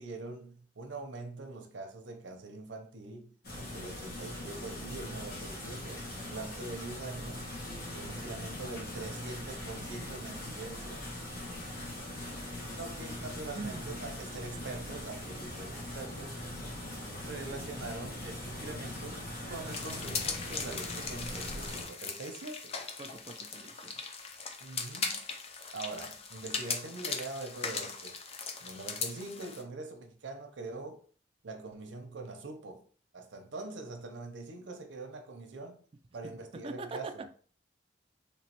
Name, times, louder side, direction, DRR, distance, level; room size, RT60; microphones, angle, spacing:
voice 1, 0.0-7.5 7.9-11.0 12.7-16.4 17.2-22.7 24.6-25.3 25.7-28.2 28.6-31.0 31.4-32.9 33.1-35.8 36.1-37.3, right 3 dB, 85° right, 0.6 m, -43 dB
sound 1, 3.4-21.9, left 1 dB, 55° left, 1.1 m, -41 dB
sound 2, 19.7-29.6, left 5 dB, 35° left, 0.4 m, -39 dB
voice 2, 23.0-24.0 36.6-37.3, right 3 dB, 30° right, 0.3 m, -42 dB
3.4 x 3.0 x 2.9 m
head